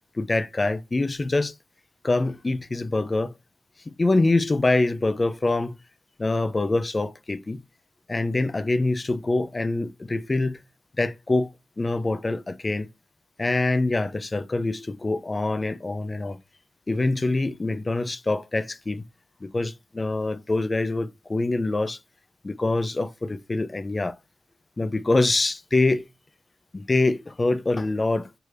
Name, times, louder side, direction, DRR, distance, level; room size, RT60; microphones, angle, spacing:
voice 1, 0.2-1.5 2.0-3.3 3.9-5.8 6.2-7.6 8.1-10.6 11.0-11.5 11.8-12.9 13.4-16.4 16.9-19.0 19.4-22.0 22.4-24.1 24.8-26.1 26.7-28.3, left 2 dB, 35° left, 0.4 m, -25 dB
4.7 x 3.2 x 2.5 m
wide cardioid pair, 90°, 0 cm